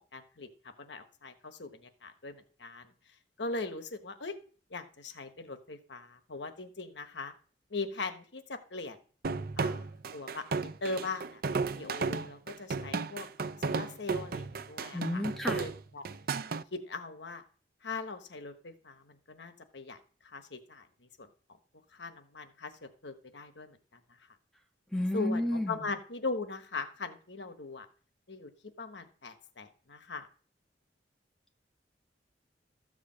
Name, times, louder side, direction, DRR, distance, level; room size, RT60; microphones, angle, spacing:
voice 1, 0.1-0.5 0.8-2.9 3.4-4.3 4.7-7.3 7.7-9.0 9.6-9.9 10.1-16.0 16.7-17.4 17.8-20.0 20.2-21.3 21.9-24.0 25.1-27.9 28.3-28.5 28.8-30.3, left 3 dB, 75° left, 7 dB, 1.2 m, -40 dB
sound 1, 9.2-16.6, right 4 dB, 55° right, 0.5 m, -34 dB
voice 2, 14.9-15.6 24.9-25.8, left 1 dB, ahead, 1 dB, 1.8 m, -31 dB
13.5 x 5.0 x 7.4 m, 0.41 s
head